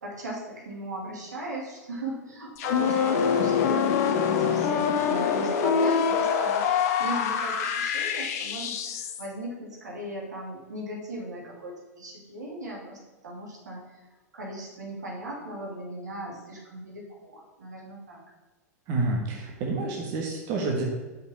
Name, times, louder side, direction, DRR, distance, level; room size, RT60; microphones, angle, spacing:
voice 1, 0.0-8.8 9.2-13.8 14.3-18.2, right 1 dB, 80° right, -2 dB, 2.7 m, -38 dB
sound 1, 2.6-9.3, left 7 dB, 60° left, 1.1 m, -25 dB
voice 2, 18.9-20.8, right 3 dB, 50° right, 0 dB, 1.6 m, -28 dB
6.5 x 5.4 x 7.1 m, 1.2 s
hypercardioid pair, 95°, 9 cm